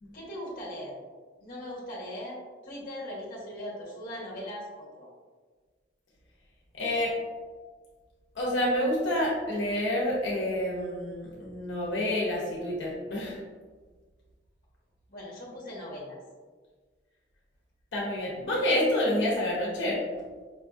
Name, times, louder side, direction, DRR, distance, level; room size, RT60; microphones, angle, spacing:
voice 1, 0.1-1.0 1.4-5.1 15.1-16.2, left 1 dB, 50° left, -4 dB, 1.1 m, -39 dB
voice 2, 6.8-7.1 8.3-13.4 17.9-20.0, left 1 dB, 85° left, -4 dB, 0.9 m, -28 dB
5.1 x 2.6 x 2.4 m, 1.4 s
head